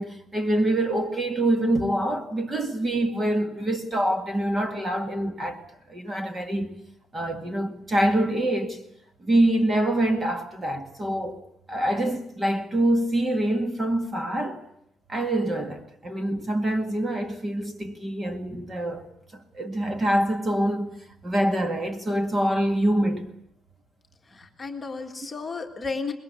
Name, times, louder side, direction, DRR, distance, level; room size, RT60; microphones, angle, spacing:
voice 1, 0.0-5.6 5.9-6.7 7.1-8.8 9.2-11.4 11.7-14.6 15.1-19.1 19.3-20.9 21.2-23.3, right 1 dB, 20° right, 2.0 m, -25 dB
voice 2, 24.3-26.1, left 4 dB, 20° left, 1.9 m, -33 dB
24.5 x 21.0 x 8.3 m
cardioid pair, 180°, 0 cm